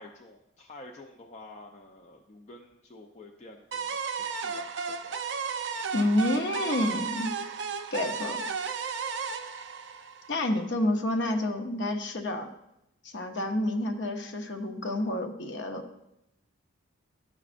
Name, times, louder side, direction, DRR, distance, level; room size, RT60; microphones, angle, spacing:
voice 1, 0.0-5.2, left 2 dB, 30° left, 1 dB, 0.4 m, -49 dB
sound 1, 3.7-10.7, right 5 dB, 55° right, 0.5 m, -34 dB
voice 2, 5.9-7.4 7.9-8.4 10.3-12.5 13.1-15.8, left 1 dB, 55° left, 4 dB, 0.8 m, -29 dB
12.0 x 6.1 x 2.5 m, 0.86 s
head